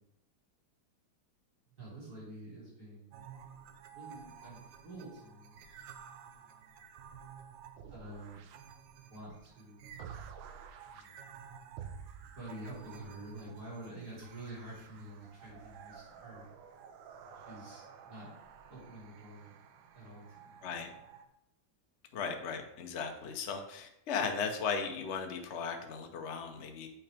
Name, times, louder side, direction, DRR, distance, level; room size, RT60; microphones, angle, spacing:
voice 1, 1.7-6.8 7.8-8.4 8.9-10.0 10.8-11.2 12.2-16.5 17.1-20.7, right 1 dB, 50° right, -8 dB, 3.8 m, -49 dB
sound 1, 3.1-21.3, right 7 dB, 75° right, 1.3 m, -52 dB
voice 2, 22.1-26.9, left 5 dB, 55° left, 4 dB, 0.8 m, -36 dB
7.7 x 5.8 x 3.4 m, 0.81 s
omnidirectional pair, 2.2 m